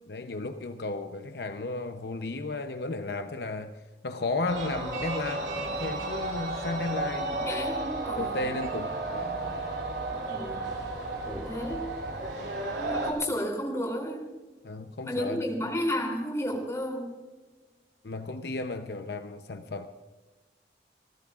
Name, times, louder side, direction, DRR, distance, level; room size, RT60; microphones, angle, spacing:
voice 1, 0.1-3.7 4.0-7.3 8.2-9.4 12.3-12.5 14.6-15.4 18.0-19.9, left 2 dB, 70° left, 7 dB, 0.7 m, -34 dB
sound 1, 4.5-13.1, right 2 dB, 85° right, 3.0 m, -33 dB
voice 2, 7.4-8.5 10.1-10.6 11.3-11.9 12.8-14.3 15.0-17.1, equal, 15° left, 1 dB, 3.2 m, -32 dB
28.5 x 14.0 x 2.5 m, 1.2 s
head